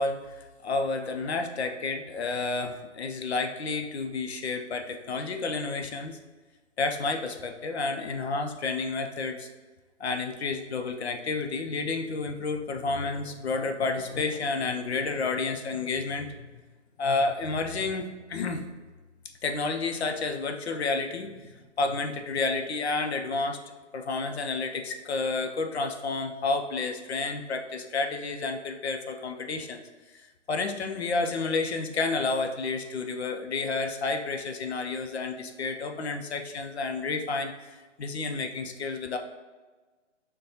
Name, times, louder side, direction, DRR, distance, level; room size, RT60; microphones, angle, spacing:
voice 1, 0.0-6.2 6.8-9.5 10.0-16.5 17.0-18.6 19.4-23.6 23.9-29.8 30.5-39.2, left 3 dB, 60° left, 5 dB, 0.6 m, -30 dB
6.3 x 2.2 x 2.8 m, 1.3 s
hypercardioid pair, 155°, 36 cm